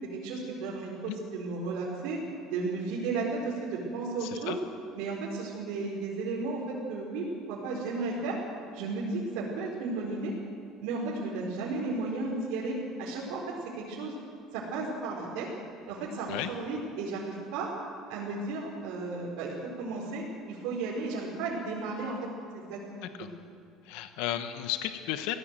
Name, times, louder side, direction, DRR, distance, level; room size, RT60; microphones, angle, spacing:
voice 1, 0.1-2.2 2.4-4.6 4.9-8.4 8.7-10.3 10.8-14.1 14.5-15.5 15.9-17.7 18.1-22.3 22.5-23.1, right 3 dB, 80° right, -5 dB, 4.7 m, -34 dB
voice 2, 4.2-4.6 16.3-16.5 23.2-23.3 23.8-25.3, left 12 dB, 80° left, 8 dB, 1.2 m, -33 dB
23.5 x 17.0 x 7.7 m, 2.4 s
cardioid pair, 165°, 0 cm